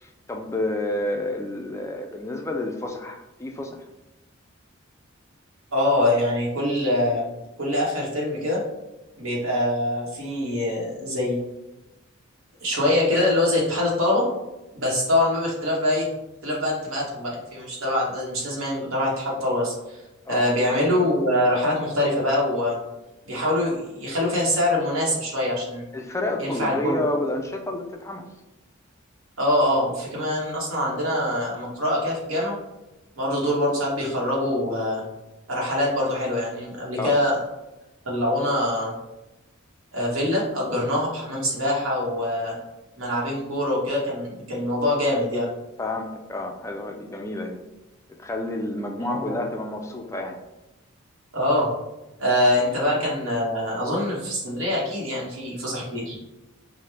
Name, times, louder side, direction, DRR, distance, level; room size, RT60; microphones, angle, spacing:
voice 1, 0.0-3.8 20.3-20.4 25.9-28.2 37.0-37.2 45.8-47.6 48.2-50.4, left 2 dB, 15° left, 3 dB, 0.3 m, -30 dB
voice 2, 5.7-7.3 7.6-8.6 9.2-11.4 12.6-14.3 14.7-16.1 16.4-20.0 20.3-22.8 23.3-25.8 26.4-27.0 29.4-32.5 33.2-35.0 35.5-37.4 38.0-38.9 39.9-42.6 43.0-45.5 49.1-49.4 51.3-51.7 52.2-56.2, left 1 dB, 70° right, -4 dB, 1.1 m, -24 dB
5.0 x 2.1 x 3.2 m, 1.0 s
head